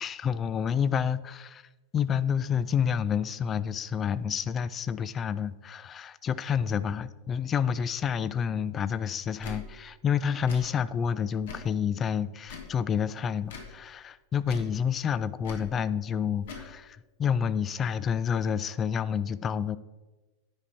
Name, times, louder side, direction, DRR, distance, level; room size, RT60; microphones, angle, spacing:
voice 1, 0.0-1.6 1.9-19.8, left 7 dB, 25° left, 17 dB, 0.3 m, -29 dB
Tick / Tick-tock, 9.4-9.6 10.4-10.6 11.4-11.7 12.4-12.7 13.4-13.7 14.4-14.7 15.4-15.7 16.4-16.7, left 6 dB, 55° left, 1.3 m, -42 dB
9.8 x 5.4 x 4.2 m, 1.2 s
figure-of-eight pair, 90°, 0 cm